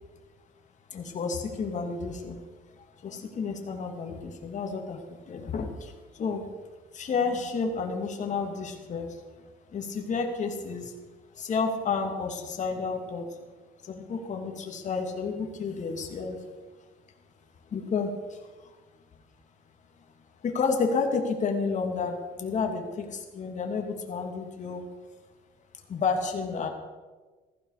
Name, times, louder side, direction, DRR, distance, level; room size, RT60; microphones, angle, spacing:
voice 1, 0.9-2.4 3.0-6.5 6.9-9.2 9.7-10.9 11.3-13.3 13.8-16.4 17.7-18.7 20.4-24.9 25.9-26.7, left 5 dB, 45° left, 3 dB, 2.7 m, -31 dB
15.5 x 15.5 x 5.0 m, 1.3 s
cardioid pair, 110°, 17 cm